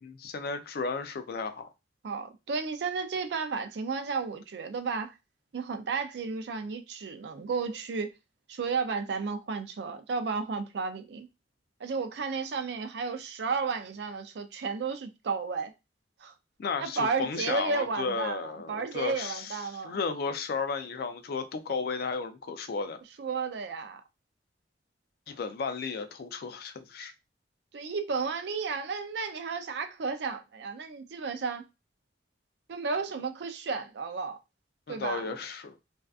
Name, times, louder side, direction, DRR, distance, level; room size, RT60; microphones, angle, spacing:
voice 1, 0.0-1.7 16.6-23.0 25.3-27.1 34.9-35.7, left 4 dB, 55° left, 0.4 m, -34 dB
voice 2, 2.0-5.1 5.5-8.1 8.5-11.3 11.8-15.7 16.2-16.3 16.8-20.0 23.2-24.0 27.7-31.6 32.7-34.4 34.9-35.3, right 4 dB, 70° right, 0.4 m, -33 dB
2.5 x 2.2 x 2.3 m
head